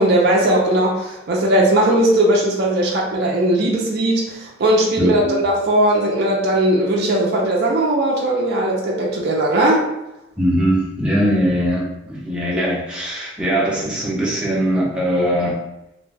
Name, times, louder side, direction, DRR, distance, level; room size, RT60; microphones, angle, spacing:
voice 1, 0.0-9.8, right 1 dB, 50° right, -2 dB, 0.5 m, -18 dB
voice 2, 5.0-5.4 10.4-15.5, equal, 5° right, -6 dB, 0.6 m, -20 dB
2.5 x 2.2 x 3.3 m, 0.89 s
head